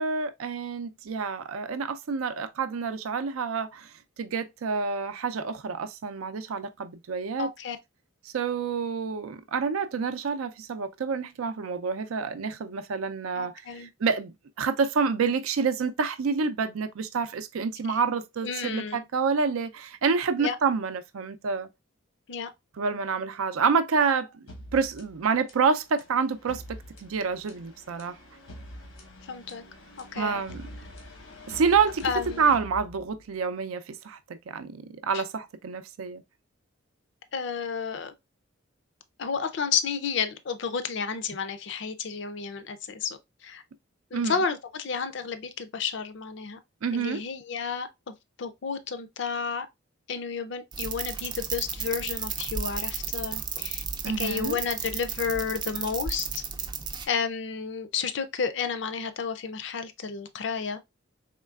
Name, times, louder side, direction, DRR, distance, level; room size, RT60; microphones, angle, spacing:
voice 1, 0.0-7.5 8.2-13.5 14.0-21.7 22.8-24.3 24.7-28.2 30.1-30.7 31.5-32.1 32.4-36.2 44.1-44.4 46.8-47.2 54.0-54.6, right 5 dB, 90° right, 0.5 m, -28 dB
voice 2, 7.4-7.8 13.4-13.9 17.9-18.0 18.4-19.0 20.4-20.6 22.3-22.5 29.3-29.6 30.1-30.4 32.0-32.5 35.1-35.2 37.3-38.1 39.2-43.6 44.1-46.6 46.9-48.1 48.4-49.7 50.1-53.8 54.2-56.4 57.1-60.8, left 6 dB, 60° left, 0.5 m, -31 dB
sound 1, 24.5-33.4, equal, 80° left, 1.1 m, -45 dB
sound 2, 50.7-57.1, right 6 dB, 20° right, 0.3 m, -33 dB
3.6 x 3.2 x 2.3 m
head